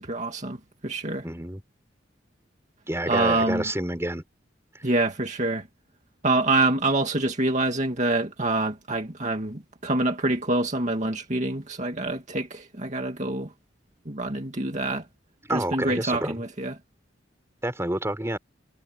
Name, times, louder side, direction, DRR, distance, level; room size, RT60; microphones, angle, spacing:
voice 1, 0.0-1.3 3.1-3.6 4.8-5.7 6.2-13.5 14.1-15.1 15.5-16.8, right 2 dB, 40° right, 2.2 m, -26 dB
voice 2, 1.2-1.6 2.9-4.2 15.5-16.4 17.6-18.4, right 1 dB, 15° right, 3.8 m, -28 dB
head